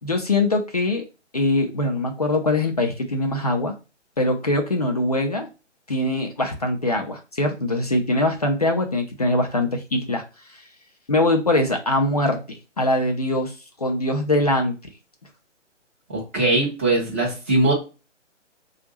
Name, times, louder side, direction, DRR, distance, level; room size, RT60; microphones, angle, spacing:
voice 1, 0.0-1.1 1.3-3.8 4.2-5.5 5.9-10.2 11.1-14.8, left 2 dB, 35° left, 3 dB, 0.5 m, -22 dB
voice 2, 16.1-17.7, right 2 dB, 10° right, -4 dB, 0.6 m, -21 dB
4.9 x 2.4 x 3.0 m, 0.30 s
figure-of-eight pair, 140°, 37 cm